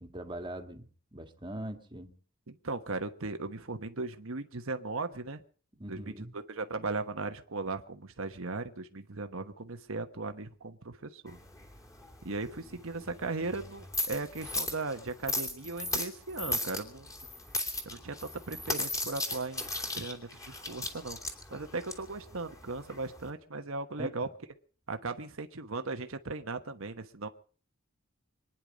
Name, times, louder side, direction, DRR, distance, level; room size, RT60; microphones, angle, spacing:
voice 1, 0.0-2.2 5.7-6.4 24.0-24.3, right 1 dB, 25° right, 1.8 m, -42 dB
voice 2, 2.5-5.4 5.9-11.4 12.2-17.1 17.8-21.2 21.5-24.3 24.9-27.3, right 3 dB, 70° right, 1.2 m, -37 dB
sound 1, 11.3-23.3, left 1 dB, 15° left, 2.9 m, -37 dB
25.5 x 10.0 x 5.2 m
head